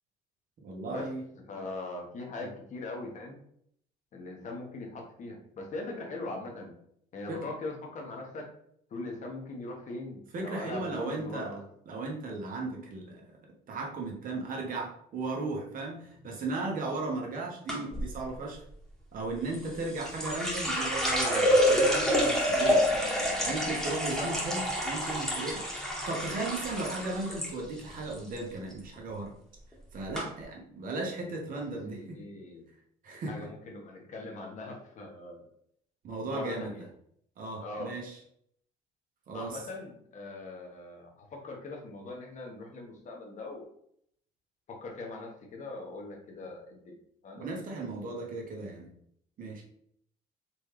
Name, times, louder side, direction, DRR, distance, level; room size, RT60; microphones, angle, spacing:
voice 1, 0.6-1.2 2.4-2.5 7.3-7.5 10.3-11.6 11.8-13.2 13.7-18.6 19.1-22.9 23.5-25.8 26.1-29.3 29.9-32.2 33.0-33.5 36.0-36.7 37.4-38.2 39.3-39.6 47.4-48.9 49.4-49.6, right 2 dB, 55° right, 0 dB, 1.4 m, -36 dB
voice 2, 1.5-3.4 4.1-6.7 7.1-8.5 8.9-11.6 31.9-32.7 33.3-35.5 36.3-36.8 37.6-37.9 39.3-43.7 44.7-46.9 47.2-47.5, left 2 dB, 45° left, 1 dB, 1.4 m, -41 dB
sound 1, 17.7-18.1 19.5-27.5 27.8-28.4 28.7-29.0 29.7-29.8 30.1-30.2, equal, ahead, 1.5 m, -28 dB
4.2 x 3.5 x 3.3 m, 0.69 s
cardioid pair, 110°, 17 cm